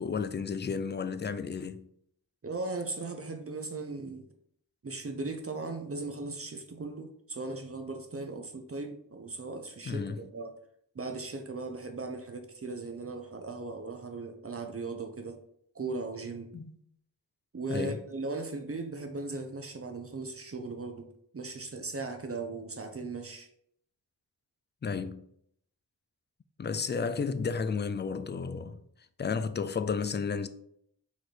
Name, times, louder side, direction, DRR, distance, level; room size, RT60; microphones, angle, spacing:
voice 1, 0.0-1.9 9.8-10.3 16.5-16.7 17.7-18.0 24.8-25.2 26.6-28.8 29.2-30.5, left 5 dB, 30° left, 0.4 m, -32 dB
voice 2, 2.4-4.3 4.8-10.5 10.9-15.4 15.7-16.5 17.5-21.1 21.3-23.5, right 3 dB, 35° right, 0.6 m, -38 dB
4.2 x 2.5 x 4.5 m
cardioid pair, 45°, 39 cm